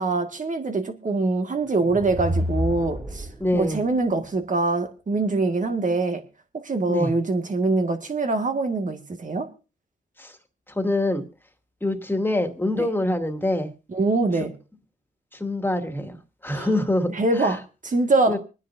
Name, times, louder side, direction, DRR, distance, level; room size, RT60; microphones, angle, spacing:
voice 1, 0.0-3.3 3.5-6.2 6.6-9.5 12.7-12.9 13.9-14.5 16.5-16.7 17.1-18.4, right 3 dB, 45° right, 6 dB, 1.9 m, -24 dB
sound 1, 1.7-3.7, equal, 15° right, 3.2 m, -29 dB
voice 2, 3.4-3.8 6.9-7.1 10.2-10.4 10.7-11.2 11.8-13.7 15.3-17.5 18.3-18.4, left 1 dB, 10° left, 6 dB, 2.3 m, -25 dB
25.5 x 9.9 x 2.6 m, 0.31 s
cardioid pair, 65°, 18 cm